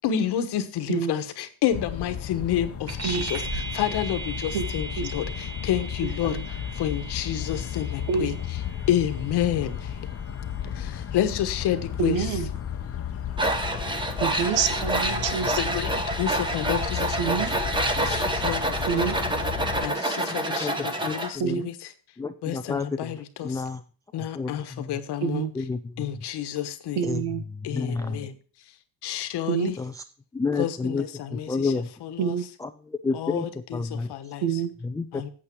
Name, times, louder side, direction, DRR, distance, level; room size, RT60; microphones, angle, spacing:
voice 1, 0.0-8.6 8.9-10.0 10.7-12.4 15.6-17.4 18.0-19.2 19.4-19.5 19.8-21.7 22.4-23.6 24.1-25.4 26.0-27.1 27.6-28.4 29.0-29.8 30.6-31.7 32.0-32.4 33.1-34.6 35.1-35.3, left 10 dB, 60° left, 10 dB, 1.3 m, -30 dB
sound 1, 1.7-19.9, left 9 dB, 30° left, 0.8 m, -34 dB
sound 2, 2.9-12.7, right 4 dB, 35° right, 4.4 m, -39 dB
voice 2, 12.0-12.5 14.2-15.7 17.2-17.5 18.9-19.1 21.4-21.7 25.2-25.5 26.9-27.4 29.5-29.7 32.2-32.4 34.4-34.7, right 7 dB, 75° right, 11 dB, 1.3 m, -27 dB
Tools, 13.4-21.3, right 1 dB, 10° right, 1.1 m, -27 dB
voice 3, 20.5-21.6 22.2-23.1 23.4-23.8 24.3-25.0 25.5-26.1 27.0-27.2 27.5-28.3 29.8-30.0 30.3-31.9 32.6-33.5 33.7-34.1 34.8-35.3, left 4 dB, 10° left, 8 dB, 0.3 m, -30 dB
8.6 x 8.4 x 4.6 m, 0.40 s
cardioid pair, 125°, 44 cm